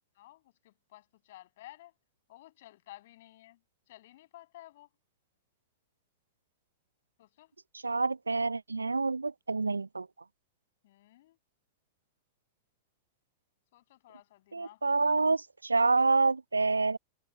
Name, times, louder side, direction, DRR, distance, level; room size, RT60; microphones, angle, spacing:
voice 1, 0.1-1.9 2.3-3.6 3.9-4.9 7.2-7.5 10.8-11.4 13.7-15.3, left 15 dB, 60° left, 7.6 m, -54 dB
voice 2, 7.8-10.1 14.5-17.0, right 3 dB, 85° right, 0.4 m, -27 dB
figure-of-eight pair, 90°, 0 cm